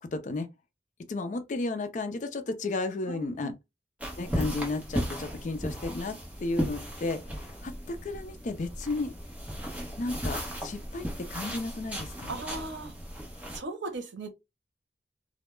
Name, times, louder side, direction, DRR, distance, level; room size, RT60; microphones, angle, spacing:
voice 1, 0.0-0.5 1.1-3.5 4.2-9.1 10.0-12.4, left 2 dB, 45° left, 0.4 m, -33 dB
voice 2, 3.1-3.5 12.3-12.9 13.5-14.3, right 3 dB, 85° right, 0.7 m, -37 dB
sound 1, 4.0-13.6, equal, 10° right, 0.7 m, -36 dB
2.2 x 2.0 x 3.1 m
head